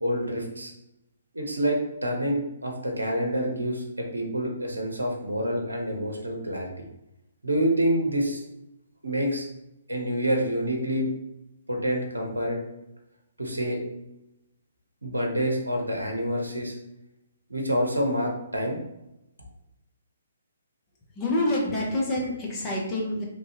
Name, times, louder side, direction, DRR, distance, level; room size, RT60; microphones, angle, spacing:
voice 1, 0.0-0.7 1.3-6.8 7.4-8.4 9.0-9.4 9.9-11.1 11.7-12.6 13.4-13.8 15.0-16.8 17.5-18.8, equal, 80° right, 0 dB, 0.7 m, -27 dB
voice 2, 21.1-23.2, left 1 dB, 20° left, -3 dB, 0.8 m, -27 dB
3.0 x 2.3 x 2.9 m, 0.87 s
figure-of-eight pair, 130°, 0 cm